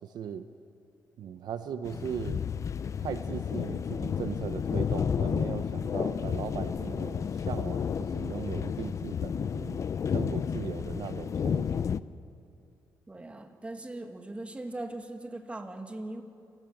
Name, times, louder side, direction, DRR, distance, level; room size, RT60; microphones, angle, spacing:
voice 1, 0.0-0.4 1.2-2.4 3.0-9.8 10.1-11.8, right 8 dB, 75° right, 10 dB, 0.9 m, -38 dB
sound 1, 1.8-12.0, left 7 dB, 45° left, 0.5 m, -31 dB
voice 2, 13.1-16.2, right 2 dB, 15° right, 5 dB, 1.9 m, -40 dB
27.0 x 16.0 x 7.9 m, 2.6 s
cardioid pair, 115°, 7 cm